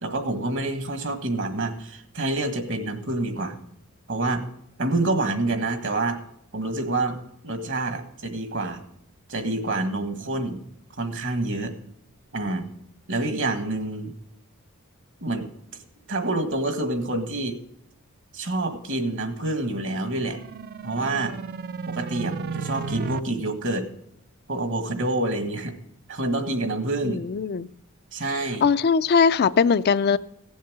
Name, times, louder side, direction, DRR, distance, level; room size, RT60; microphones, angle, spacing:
voice 1, 0.0-3.6 4.1-4.4 4.8-6.2 6.5-8.8 9.3-10.6 11.0-11.7 12.3-12.7 13.1-14.1 15.2-15.5 16.1-17.6 18.3-20.4 20.8-21.3 21.9-23.9 24.5-25.7 26.1-27.2 28.1-28.6, right 2 dB, 60° right, 1.6 m, -27 dB
sound 1, 19.9-23.2, right 5 dB, 45° right, 0.4 m, -34 dB
voice 2, 27.0-27.7 28.6-30.2, left 5 dB, 45° left, 0.4 m, -20 dB
16.5 x 7.3 x 6.1 m
head